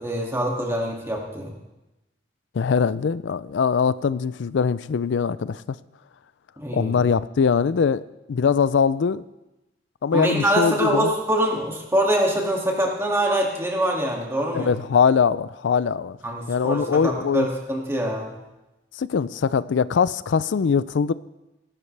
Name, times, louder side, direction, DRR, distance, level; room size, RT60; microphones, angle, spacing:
voice 1, 0.0-1.5 6.6-7.0 10.1-14.7 16.2-18.3, right 1 dB, 15° right, -1 dB, 2.3 m, -24 dB
voice 2, 2.6-5.6 6.7-8.0 8.3-9.2 10.0-11.1 14.5-16.2 16.5-17.5 19.0-21.1, left 6 dB, 90° left, 17 dB, 0.4 m, -22 dB
20.0 x 12.5 x 3.4 m, 0.99 s
head